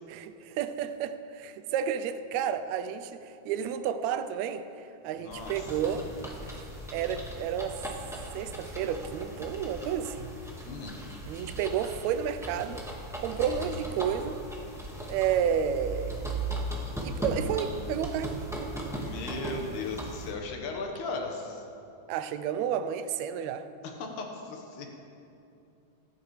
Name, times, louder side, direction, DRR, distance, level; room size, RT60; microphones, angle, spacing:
voice 1, 0.1-4.7 5.0-6.1 6.4-6.6 6.9-7.8 8.3-10.3 11.3-12.8 13.2-14.4 15.1-16.2 17.0-18.4 22.1-23.6, right 8 dB, 80° right, 11 dB, 1.8 m, -31 dB
voice 2, 5.1-5.7 10.6-11.0 18.9-21.6 23.8-24.9, left 3 dB, 85° left, 2 dB, 2.7 m, -37 dB
sound 1, 5.3-20.3, right 1 dB, 5° right, 0.4 m, -38 dB
24.0 x 9.6 x 3.2 m, 2.7 s
omnidirectional pair, 3.4 m